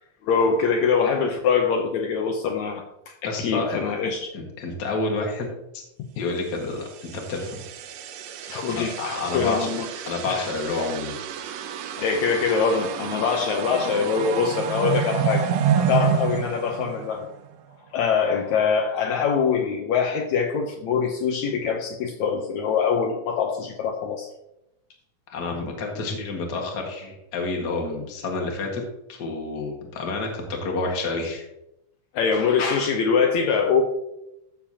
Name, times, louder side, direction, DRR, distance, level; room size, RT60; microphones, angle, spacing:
voice 1, 0.2-4.3 8.5-9.9 10.3-10.5 12.0-15.5 15.8-17.3 17.9-24.3 32.1-33.8, left 6 dB, 70° left, 3 dB, 2.0 m, -23 dB
voice 2, 3.2-3.8 4.3-5.8 6.2-7.6 8.7-9.7 10.1-11.1 25.3-28.8 29.1-31.4, left 3 dB, 40° left, 1 dB, 1.8 m, -29 dB
sound 1, 6.8-17.5, right 8 dB, 75° right, 1.6 m, -29 dB
14.0 x 6.9 x 2.8 m, 0.86 s
omnidirectional pair, 3.6 m